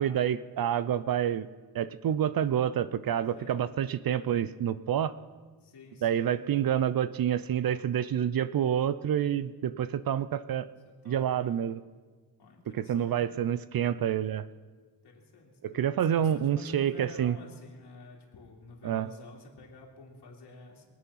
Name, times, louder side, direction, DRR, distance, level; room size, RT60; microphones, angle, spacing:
voice 1, 0.0-1.5 1.7-5.1 6.0-10.7 11.1-11.8 12.7-14.5 15.6-17.4 18.8-19.1, right 9 dB, 60° right, 15 dB, 0.5 m, -28 dB
voice 2, 5.6-6.4 11.0-11.7 12.4-13.4 15.0-20.9, left 3 dB, 90° left, -1 dB, 2.7 m, -50 dB
23.0 x 8.4 x 5.7 m, 1.4 s
wide cardioid pair, 150°, 39 cm